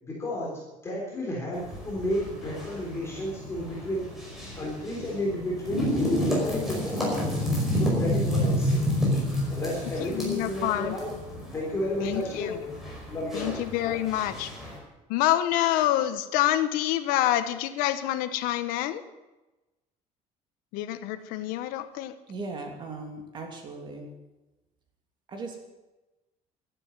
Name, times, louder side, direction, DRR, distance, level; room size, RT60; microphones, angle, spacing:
voice 1, 0.0-4.1 4.5-7.0 7.7-8.8 9.5-11.2 11.5-12.6 13.1-14.0, left 1 dB, 20° left, -3 dB, 3.7 m, -32 dB
sound 1, 1.5-14.8, equal, ahead, 5.2 m, -30 dB
voice 2, 10.0-10.9 12.0-12.5 13.3-14.5 15.1-19.0 20.7-22.2, left 13 dB, 85° left, 12 dB, 1.2 m, -27 dB
voice 3, 22.3-24.1 25.3-25.6, right 3 dB, 35° right, 2 dB, 3.0 m, -38 dB
12.0 x 11.5 x 9.6 m, 1.1 s
cardioid pair, 165°, 14 cm